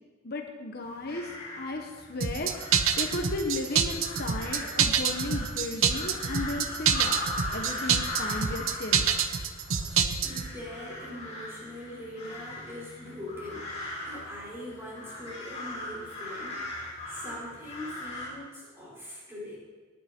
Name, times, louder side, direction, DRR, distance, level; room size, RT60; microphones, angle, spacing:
voice 1, 0.2-7.2 7.5-9.1, left 2 dB, 50° left, 2 dB, 1.1 m, -35 dB
sound 1, 0.8-18.3, left 1 dB, 30° left, 4.3 m, -40 dB
sound 2, 2.2-10.5, right 7 dB, 70° right, 0.9 m, -26 dB
voice 2, 10.2-16.7 17.1-19.6, left 1 dB, 10° right, -6 dB, 5.1 m, -42 dB
19.5 x 9.5 x 4.5 m, 1.5 s
head